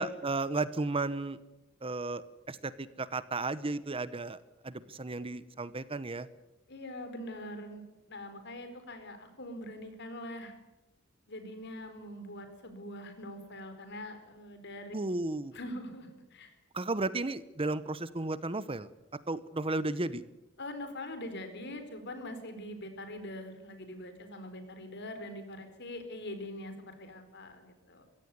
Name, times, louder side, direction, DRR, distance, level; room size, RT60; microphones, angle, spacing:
voice 1, 0.0-1.4 1.8-4.4 4.6-6.3 14.9-15.5 16.7-18.9 19.3-20.2, right 2 dB, 30° right, 15 dB, 0.9 m, -34 dB
voice 2, 6.7-10.5 11.3-14.9 15.5-16.6 20.6-28.1, left 1 dB, 60° left, 8 dB, 4.5 m, -43 dB
23.0 x 16.5 x 9.5 m, 1.0 s
head